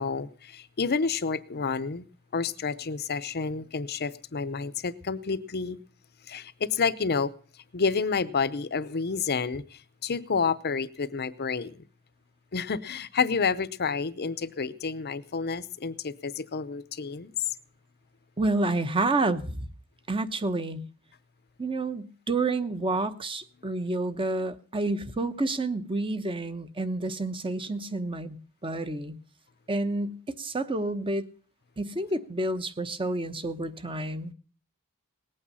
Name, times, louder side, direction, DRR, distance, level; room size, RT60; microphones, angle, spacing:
voice 1, 0.0-2.0 2.3-5.8 6.3-7.3 7.7-11.8 12.5-17.3, left 5 dB, 45° left, 0.7 m, -29 dB
voice 2, 18.4-19.7 20.1-20.8 21.6-28.4 28.6-29.2 29.7-31.3 31.8-34.3, right 2 dB, 25° right, 0.9 m, -29 dB
19.0 x 8.7 x 5.5 m
head